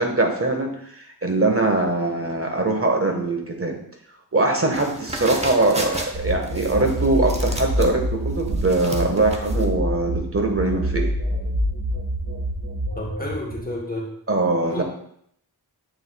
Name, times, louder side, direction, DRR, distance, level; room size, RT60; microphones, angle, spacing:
voice 1, 0.0-3.8 4.3-11.1 14.3-14.8, right 2 dB, 35° right, 2 dB, 1.4 m, -22 dB
sound 1, 4.7-9.7, right 1 dB, 15° right, 1.0 m, -32 dB
sound 2, 6.1-13.8, equal, 85° right, 2.1 m, -27 dB
voice 2, 13.0-14.1 14.7-14.8, left 1 dB, 20° left, -2 dB, 1.2 m, -30 dB
7.7 x 7.0 x 2.3 m, 0.68 s
wide cardioid pair, 75°, 39 cm